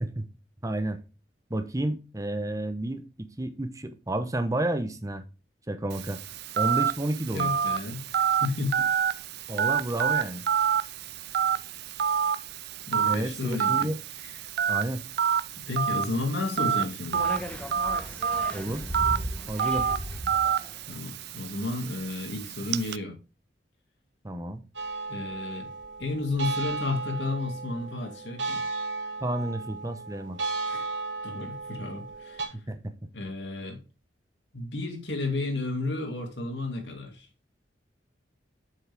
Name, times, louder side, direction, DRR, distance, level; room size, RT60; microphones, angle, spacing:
voice 1, 0.6-1.0 1.5-5.2 5.7-6.2 6.6-7.5 9.5-10.4 13.1-14.0 14.7-15.0 18.5-18.9 19.5-19.9 24.2-24.6 29.2-30.4 32.5-32.9, right 1 dB, 20° right, 0.9 m, -31 dB
Telephone, 5.9-23.0, right 8 dB, 60° right, 0.4 m, -28 dB
voice 2, 7.3-8.8 12.9-13.9 14.2-14.3 15.7-17.3 20.9-23.1 25.1-25.7 26.0-28.6 30.6-30.9 31.2-32.6 33.1-33.8 34.5-37.3, left 2 dB, 70° left, 2.6 m, -32 dB
sound 1, 17.1-20.9, equal, 5° left, 1.2 m, -36 dB
sound 2, 24.7-32.4, right 3 dB, 85° right, 2.4 m, -35 dB
7.7 x 6.4 x 3.5 m
head